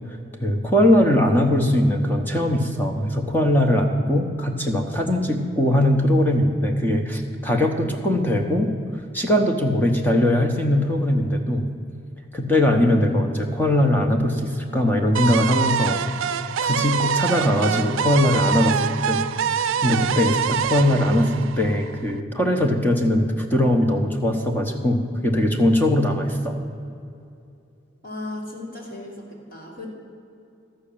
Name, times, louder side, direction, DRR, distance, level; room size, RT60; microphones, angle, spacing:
voice 1, 0.4-8.7 9.1-11.6 12.3-16.0 16.6-19.2 19.8-26.6, left 1 dB, 10° left, 3 dB, 0.9 m, -20 dB
sound 1, 15.1-22.1, right 7 dB, 85° right, 0.4 m, -25 dB
voice 2, 28.0-29.9, left 2 dB, 45° left, -2 dB, 2.5 m, -35 dB
12.5 x 6.3 x 8.6 m, 2.6 s
head